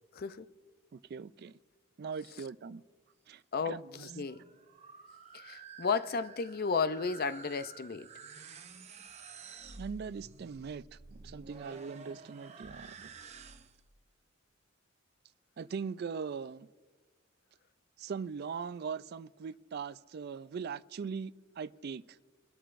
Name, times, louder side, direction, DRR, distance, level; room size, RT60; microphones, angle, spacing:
voice 1, 0.1-0.5 3.5-4.4 5.3-8.1, left 5 dB, 45° left, 0.5 m, -33 dB
voice 2, 0.9-1.5 2.0-2.8 3.3-4.1 9.8-11.0 11.2-13.1 15.6-16.7 18.0-22.2, right 6 dB, 50° right, 0.3 m, -40 dB
sound 1, 3.9-13.9, right 4 dB, 30° right, 0.7 m, -51 dB
23.5 x 12.5 x 2.5 m
head